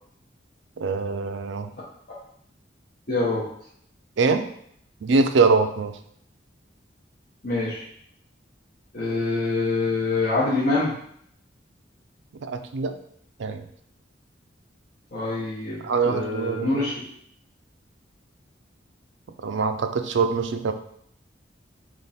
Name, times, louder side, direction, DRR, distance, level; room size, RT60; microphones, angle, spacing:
voice 1, 0.8-1.7 4.2-4.5 5.0-6.0 12.4-12.9 13.4-13.6 15.8-16.8 19.4-20.7, right 4 dB, 75° right, 8 dB, 0.4 m, -23 dB
voice 2, 3.1-3.4 7.4-7.8 8.9-11.0 15.1-17.0, left 3 dB, 50° left, -9 dB, 1.0 m, -25 dB
3.6 x 3.0 x 4.2 m, 0.68 s
head